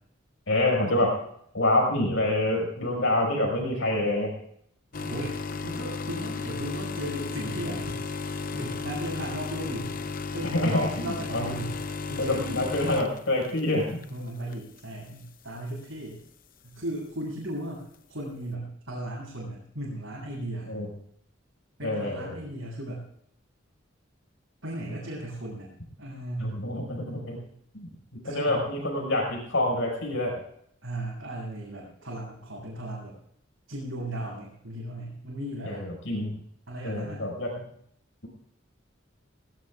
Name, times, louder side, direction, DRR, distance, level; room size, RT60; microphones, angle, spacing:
voice 1, 0.5-1.1 1.5-4.3 9.6-9.7 10.4-11.5 12.2-14.0 20.7-20.9 21.8-22.4 26.4-27.4 27.7-27.9 28.2-30.3 35.6-36.3 36.8-37.5, left 1 dB, 75° left, 0 dB, 6.0 m, -27 dB
sound 1, 4.9-14.1 14.5-14.8 15.7-15.8, left 4 dB, 45° left, 0.8 m, -34 dB
voice 2, 5.0-8.0 8.3-9.9 10.3-11.7 12.1-12.6 14.1-16.2 16.6-20.8 21.8-23.0 24.6-25.7 26.0-26.6 28.2-28.6 30.8-33.2 33.7-35.8 36.7-37.2, right 1 dB, 80° right, -7 dB, 7.9 m, -36 dB
21.0 x 19.5 x 2.5 m, 0.68 s
head